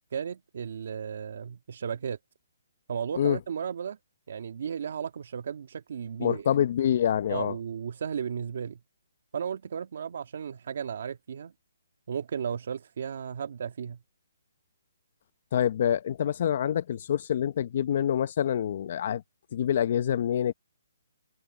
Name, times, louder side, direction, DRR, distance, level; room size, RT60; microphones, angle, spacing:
voice 1, 0.1-2.2 2.9-4.0 4.3-6.6 7.3-8.8 9.3-11.5 12.1-14.0, right 7 dB, 55° right, 1.6 m, -34 dB
voice 2, 6.2-7.5 15.5-19.2 19.5-20.5, left 10 dB, 45° left, 0.8 m, -26 dB
hypercardioid pair, 165°, 0 cm